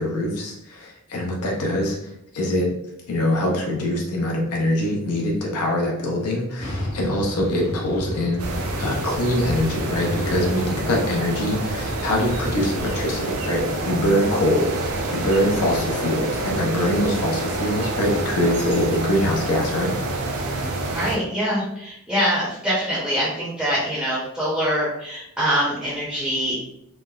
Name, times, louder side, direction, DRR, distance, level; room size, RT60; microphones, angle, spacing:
voice 1, 0.0-2.7 3.1-20.0, left 1 dB, 85° left, -1 dB, 0.5 m, -23 dB
sound 1, 6.6-14.6, left 1 dB, 60° left, 0.9 m, -34 dB
sound 2, 8.4-21.2, right 2 dB, 70° right, 0.4 m, -27 dB
voice 2, 20.9-26.6, equal, 5° right, -9 dB, 0.6 m, -24 dB
3.1 x 2.0 x 2.3 m, 0.79 s
head